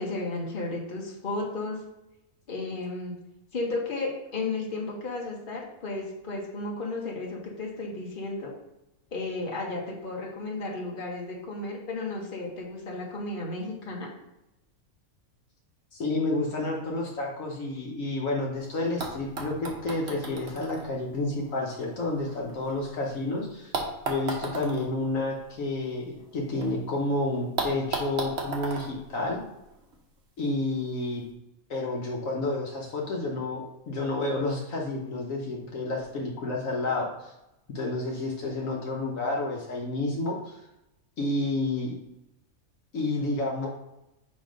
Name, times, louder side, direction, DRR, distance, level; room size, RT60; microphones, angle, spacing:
voice 1, 0.0-1.8 2.5-3.2 3.5-8.5 9.1-14.1, left 2 dB, 40° left, -2 dB, 1.5 m, -33 dB
voice 2, 15.9-23.7 24.1-29.4 30.4-31.2 31.7-37.3 37.7-40.5 41.2-41.9 42.9-43.7, left 2 dB, 70° left, -2 dB, 1.4 m, -30 dB
sound 1, 18.5-18.6 19.0-23.1 23.7-26.7 27.0-27.1 27.6-30.0 30.9-31.0, right 3 dB, 50° right, 1.3 m, -36 dB
7.0 x 3.2 x 5.1 m, 0.89 s
omnidirectional pair, 1.5 m